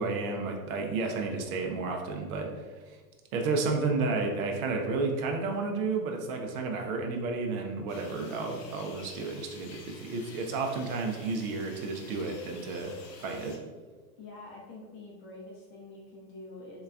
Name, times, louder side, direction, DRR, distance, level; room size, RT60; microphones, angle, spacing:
voice 1, 0.0-3.0 3.3-12.9 13.2-13.6, right 3 dB, 55° right, 2 dB, 0.6 m, -32 dB
sound 1, 7.9-13.6, left 4 dB, 75° left, 0.7 m, -50 dB
voice 2, 14.2-16.8, left 2 dB, 25° left, -3 dB, 0.5 m, -46 dB
3.8 x 2.2 x 2.3 m, 1.4 s
hypercardioid pair, 100°, 50 cm